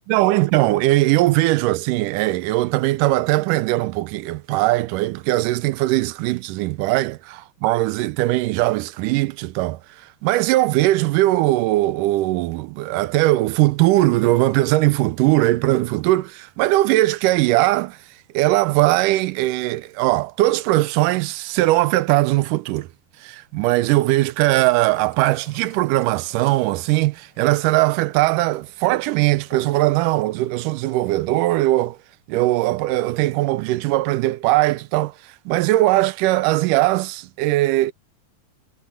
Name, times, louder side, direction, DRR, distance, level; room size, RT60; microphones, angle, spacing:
voice 1, 0.1-9.8 10.2-18.0 18.3-22.9 23.2-32.0 32.3-35.1 35.5-37.9, right 18 dB, 85° right, 2.2 m, -20 dB
sound 1, 24.1-31.2, left 2 dB, 30° left, 7.4 m, -52 dB
omnidirectional pair, 3.7 m